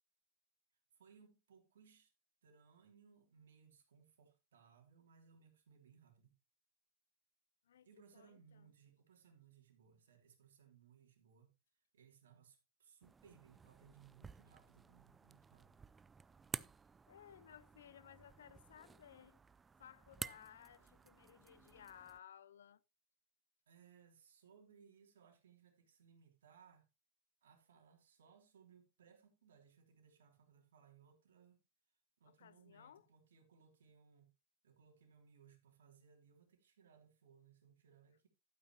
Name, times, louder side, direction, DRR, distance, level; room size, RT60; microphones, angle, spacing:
voice 1, 0.9-2.1 2.4-6.3 7.8-11.5 11.9-15.8 23.7-26.9 27.4-31.6 32.2-34.3 34.6-38.3, right 7 dB, 80° right, 2.9 m, -66 dB
voice 2, 8.1-8.7 17.1-19.4 19.8-22.8 32.3-33.1, left 10 dB, 80° left, 0.5 m, -59 dB
sound 1, 13.0-22.2, right 5 dB, 20° right, 0.4 m, -53 dB
12.0 x 8.9 x 2.9 m
hypercardioid pair, 95°, 0 cm